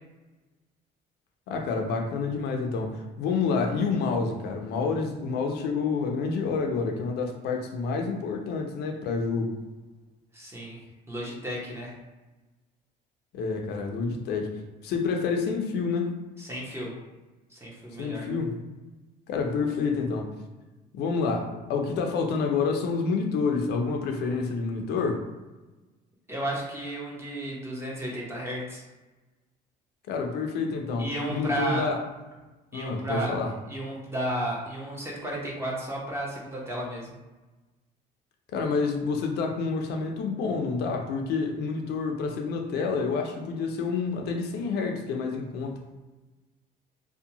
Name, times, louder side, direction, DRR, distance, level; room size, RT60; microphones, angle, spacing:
voice 1, 1.5-9.6 13.3-14.6 14.8-16.1 18.0-18.6 19.3-20.3 20.9-25.3 30.1-32.0 32.7-33.5 38.5-45.8, left 4 dB, 75° left, 3 dB, 0.5 m, -28 dB
voice 2, 10.3-10.8 11.1-11.9 16.4-16.9 17.5-18.2 26.3-28.8 31.0-31.9 32.7-33.3 33.7-37.1, right 1 dB, 15° right, -4 dB, 0.8 m, -33 dB
2.7 x 2.2 x 2.8 m, 1.2 s
cardioid pair, 110°, 17 cm